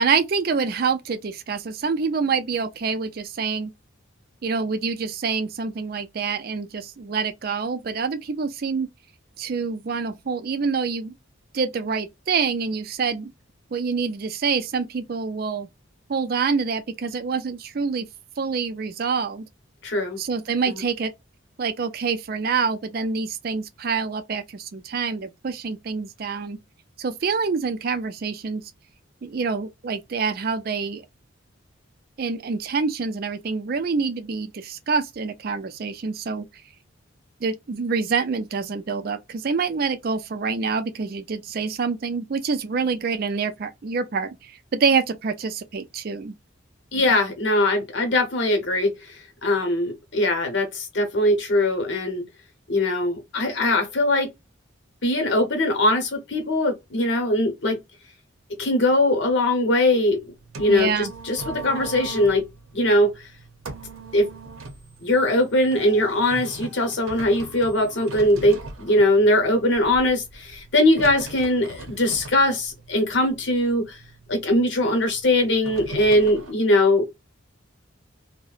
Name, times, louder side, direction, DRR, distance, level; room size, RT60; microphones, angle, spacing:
voice 1, 0.0-3.7 4.4-8.9 9.4-11.1 11.5-13.3 13.7-15.7 16.1-18.0 18.4-19.5 20.2-21.1 21.6-26.6 27.0-28.6 29.2-31.0 32.2-36.4 37.4-46.3 60.7-61.1, right 5 dB, 45° right, 0.4 m, -26 dB
voice 2, 19.8-20.2 20.7-20.8 46.9-49.1 49.4-52.2 52.7-54.3 55.0-57.8 58.6-60.2 60.6-62.4 62.7-63.2 64.1-64.3 65.0-74.0 74.3-77.1, left 1 dB, 60° left, 0.9 m, -21 dB
sound 1, 60.1-76.5, right 3 dB, 85° right, 0.7 m, -41 dB
2.7 x 2.1 x 2.4 m
head